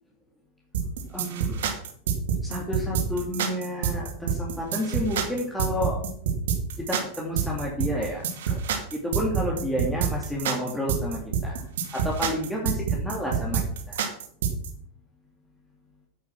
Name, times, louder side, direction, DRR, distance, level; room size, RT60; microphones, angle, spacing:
sound 1, 0.7-14.7, right 7 dB, 80° right, 2.6 m, -27 dB
voice 1, 1.1-1.7 2.4-6.0 6.8-8.6 8.9-14.0, equal, 5° left, -4 dB, 2.6 m, -31 dB
9.6 x 9.3 x 6.0 m, 0.64 s
supercardioid pair, 135°, 0 cm